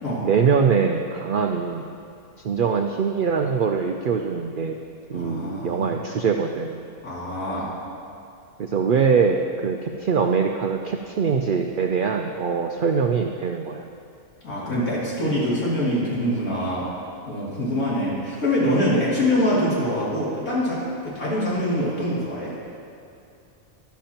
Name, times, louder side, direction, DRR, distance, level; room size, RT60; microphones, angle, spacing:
voice 1, 0.2-1.9 2.4-4.8 5.1-6.8 8.6-13.9, right 6 dB, 90° right, 4 dB, 0.4 m, -23 dB
voice 2, 5.1-6.0 7.0-7.7 14.4-16.9 17.2-22.6, equal, 75° left, -8 dB, 3.1 m, -24 dB
11.5 x 11.5 x 2.9 m, 2.6 s
omnidirectional pair, 1.5 m